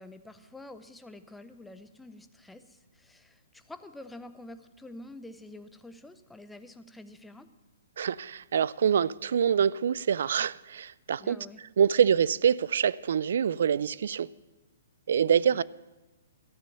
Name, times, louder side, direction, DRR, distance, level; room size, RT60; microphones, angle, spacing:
voice 1, 0.0-7.5 11.2-11.6 15.3-15.6, left 1 dB, 5° left, 0.6 m, -48 dB
voice 2, 8.0-11.4 11.8-14.3 15.1-15.6, right 8 dB, 70° right, 0.3 m, -25 dB
13.0 x 6.8 x 9.1 m
hypercardioid pair, 145°, 0 cm